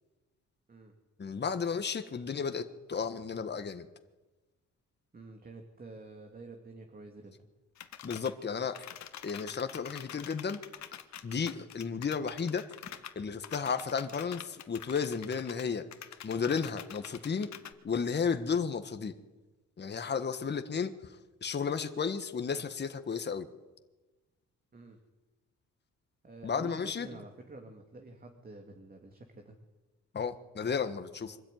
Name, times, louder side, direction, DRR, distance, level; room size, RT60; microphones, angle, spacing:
voice 1, 1.2-3.9 8.0-8.9 9.2-10.6 11.2-12.7 13.1-15.9 16.2-17.5 17.8-19.1 19.8-23.5 26.4-27.1 30.1-31.4, left 6 dB, 35° left, 8 dB, 1.5 m, -33 dB
voice 2, 5.1-7.5 24.7-25.0 26.2-29.6, right 2 dB, 30° right, 3 dB, 2.7 m, -49 dB
sound 1, 7.8-8.3 8.7-15.6 15.9-17.7, left 10 dB, 65° left, 1.5 m, -46 dB
24.5 x 13.5 x 9.3 m, 1.2 s
cardioid pair, 90°, 30 cm